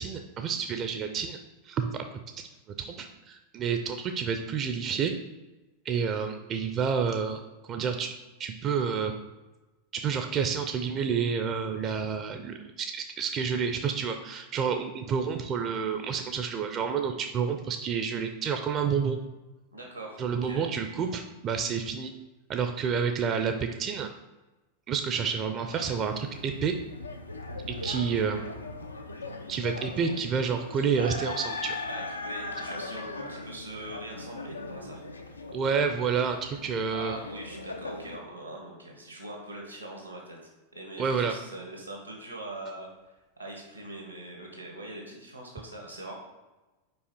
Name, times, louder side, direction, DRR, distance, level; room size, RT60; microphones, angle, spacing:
voice 1, 0.0-1.4 1.6-2.0 2.8-5.1 5.8-8.1 8.4-9.1 9.9-19.2 20.2-22.1 22.5-24.1 24.9-26.7 27.7-28.4 29.5-31.8 35.5-37.2 41.0-41.4, right 6 dB, 30° right, 6 dB, 0.5 m, -29 dB
voice 2, 19.7-20.6 31.9-35.0 36.9-40.4 40.7-46.1, right 1 dB, 90° right, 0 dB, 1.7 m, -42 dB
sound 1, 25.7-38.2, left 2 dB, 80° left, 0.5 m, -39 dB
5.4 x 4.8 x 4.3 m, 1.1 s
figure-of-eight pair, 90°, 0 cm